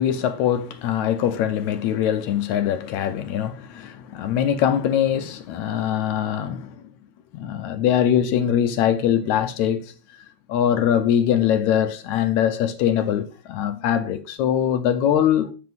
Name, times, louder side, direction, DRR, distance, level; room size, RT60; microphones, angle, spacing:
voice 1, 0.0-6.8 7.3-9.9 10.5-15.5, left 9 dB, 75° left, 1.9 m, -22 dB
7.8 x 7.5 x 3.6 m
omnidirectional pair, 3.5 m